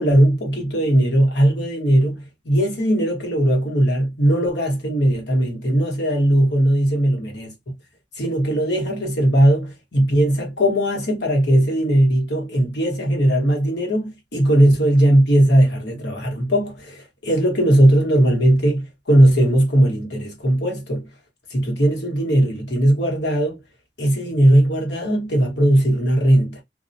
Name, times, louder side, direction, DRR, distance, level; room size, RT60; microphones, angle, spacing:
voice 1, 0.0-7.5 8.2-21.1 21.5-23.6 24.0-26.6, right 1 dB, 70° left, 1.1 m, -18 dB
2.2 x 2.1 x 2.5 m
head